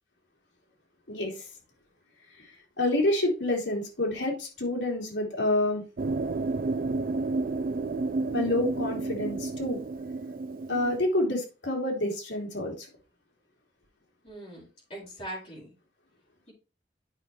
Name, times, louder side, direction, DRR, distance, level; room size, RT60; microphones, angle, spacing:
voice 1, 1.1-1.4 2.8-5.8 8.3-9.8 10.7-12.9, left 1 dB, 90° left, 3.0 m, -28 dB
sound 1, 6.0-11.0, right 3 dB, 50° right, 0.4 m, -31 dB
voice 2, 14.2-15.7, right 1 dB, 35° left, 4.6 m, -41 dB
8.9 x 5.5 x 3.1 m
head